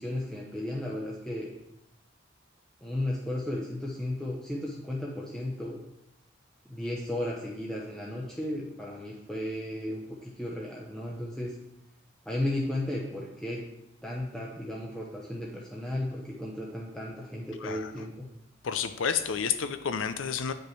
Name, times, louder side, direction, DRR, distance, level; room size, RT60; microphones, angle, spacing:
voice 1, 0.0-1.5 2.8-5.8 6.6-11.5 12.3-13.6 14.0-18.3, left 1 dB, 5° left, -4 dB, 0.7 m, -34 dB
voice 2, 18.6-20.5, left 7 dB, 75° left, 11 dB, 0.5 m, -30 dB
8.7 x 5.2 x 3.2 m, 0.84 s
head